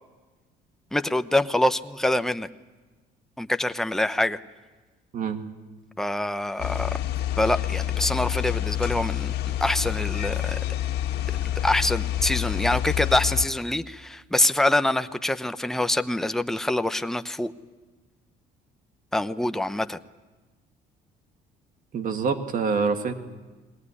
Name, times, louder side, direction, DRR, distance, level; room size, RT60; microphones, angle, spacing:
voice 1, 0.9-2.5 3.4-4.4 6.0-7.0 7.4-10.6 11.3-11.4 11.6-17.5 19.1-20.0, left 1 dB, ahead, 10 dB, 0.8 m, -25 dB
sound 1, 6.6-13.5, left 12 dB, 70° left, 1.8 m, -28 dB
voice 2, 21.9-23.1, right 5 dB, 55° right, 7 dB, 2.1 m, -26 dB
21.5 x 18.5 x 9.8 m, 1.3 s
cardioid pair, 110°, 17 cm